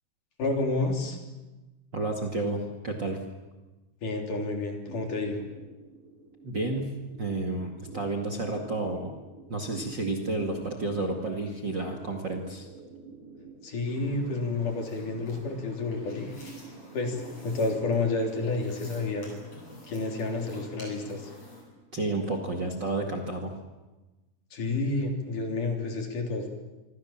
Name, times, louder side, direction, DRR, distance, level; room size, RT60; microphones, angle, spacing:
voice 1, 0.4-1.2 4.0-5.4 13.6-16.3 16.9-19.3 19.9-21.3 24.5-26.5, left 3 dB, 55° left, 2 dB, 4.9 m, -30 dB
voice 2, 1.9-3.2 6.4-6.9 7.2-9.1 9.5-12.7 21.9-23.5, right 2 dB, 35° right, 4 dB, 2.2 m, -31 dB
sound 1, 4.8-23.6, right 3 dB, 55° right, 6.5 m, -49 dB
sound 2, 13.9-21.6, left 1 dB, 40° left, 8.9 m, -49 dB
27.0 x 24.5 x 7.4 m, 1.1 s
omnidirectional pair, 4.4 m